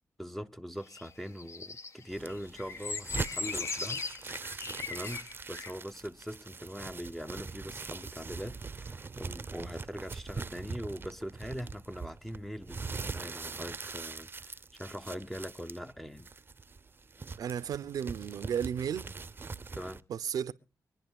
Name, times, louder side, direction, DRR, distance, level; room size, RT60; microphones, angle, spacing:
voice 1, 0.2-4.5 4.9-16.3 19.7-20.0, equal, 5° left, 0.6 m, -42 dB
sound 1, 0.9-5.7, left 4 dB, 50° left, 0.9 m, -39 dB
sound 2, 2.1-20.0, right 4 dB, 35° right, 0.6 m, -42 dB
voice 2, 17.4-19.1 20.1-20.5, right 8 dB, 75° right, 0.6 m, -33 dB
25.0 x 10.0 x 2.3 m
cardioid pair, 70°, 6 cm